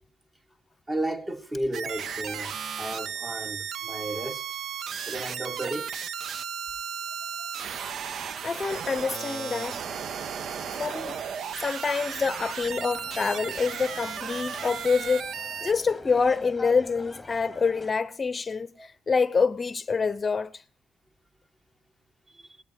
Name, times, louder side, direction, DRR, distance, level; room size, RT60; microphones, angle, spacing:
voice 1, 0.9-4.4 5.1-5.9 7.6-7.7 18.8-18.9 22.3-22.5, right 1 dB, 25° right, 1.8 m, -33 dB
sound 1, 1.7-15.7, right 7 dB, 65° right, 0.7 m, -35 dB
voice 2, 8.4-9.8 10.8-11.2 11.6-15.3 15.6-20.6, left 5 dB, 30° left, 0.7 m, -26 dB
sound 2, 12.6-17.9, left 2 dB, 10° left, 1.3 m, -45 dB
19.0 x 11.5 x 6.4 m
cardioid pair, 90°, 0 cm